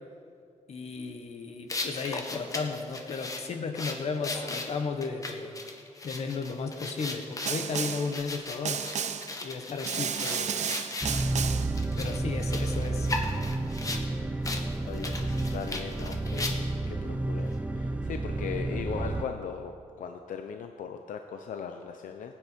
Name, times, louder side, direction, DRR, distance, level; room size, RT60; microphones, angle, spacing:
voice 1, 0.7-5.6 6.0-8.8 9.4-10.7 12.0-13.1, left 4 dB, 55° left, 6 dB, 1.3 m, -34 dB
sound 1, 1.7-11.2 11.7-14.0 14.4-14.6 14.9-16.8, left 2 dB, 25° left, 1.2 m, -37 dB
voice 2, 4.2-4.6 14.9-22.3, left 7 dB, 85° left, 6 dB, 0.7 m, -39 dB
Snare drum, 7.5-8.2 8.7-9.4 9.9-11.8, right 8 dB, 60° right, 0.7 m, -32 dB
sound 2, 11.0-19.3, right 2 dB, 10° right, 0.6 m, -31 dB
19.0 x 9.2 x 5.2 m, 2.4 s
wide cardioid pair, 155°, 13 cm